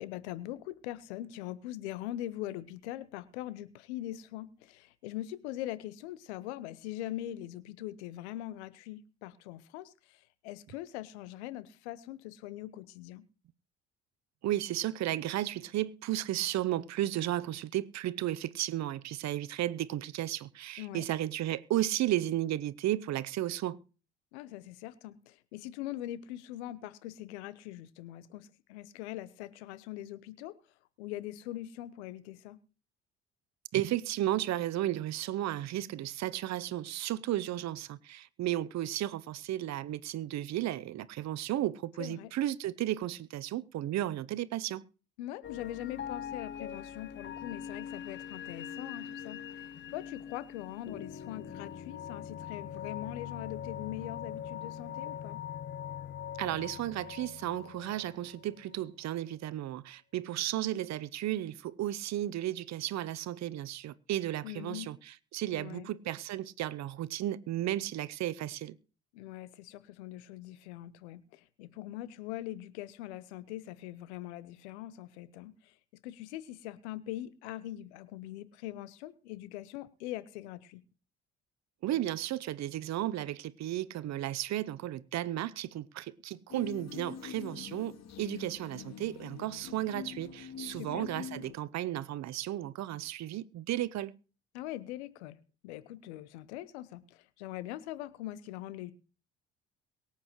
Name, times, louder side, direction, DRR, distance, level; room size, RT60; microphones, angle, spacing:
voice 1, 0.0-13.2 20.8-21.1 24.3-30.6 31.0-32.6 42.0-42.3 45.2-55.4 64.4-64.9 65.5-65.9 69.1-75.7 76.0-80.8 90.7-91.1 94.5-98.9, left 14 dB, 80° left, 0.9 m, -42 dB
voice 2, 14.4-23.8 33.7-44.8 56.4-68.7 81.8-94.1, right 13 dB, 55° right, 0.8 m, -34 dB
sound 1, 45.4-58.8, left 9 dB, 35° left, 0.7 m, -42 dB
sound 2, 86.5-91.5, left 8 dB, 50° left, 1.9 m, -45 dB
23.0 x 8.4 x 3.1 m
hypercardioid pair, 50°, 33 cm